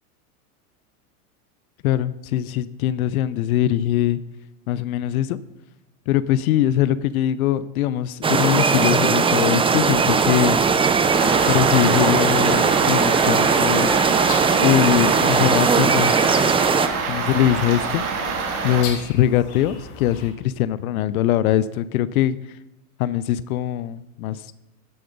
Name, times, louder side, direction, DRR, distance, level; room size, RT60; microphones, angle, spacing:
voice 1, 1.8-4.2 4.7-5.4 6.1-10.6 11.5-13.9 14.6-16.4 17.0-18.0 18.6-22.4 23.0-24.4, left 12 dB, 70° left, 16 dB, 0.7 m, -22 dB
sound 1, 8.2-16.9, right 5 dB, 10° right, 0.6 m, -19 dB
sound 2, 9.7-20.3, left 5 dB, 50° left, 3.3 m, -39 dB
sound 3, 11.1-18.8, right 5 dB, 70° right, 2.6 m, -26 dB
15.0 x 7.8 x 5.3 m, 0.94 s
hypercardioid pair, 105°, 45 cm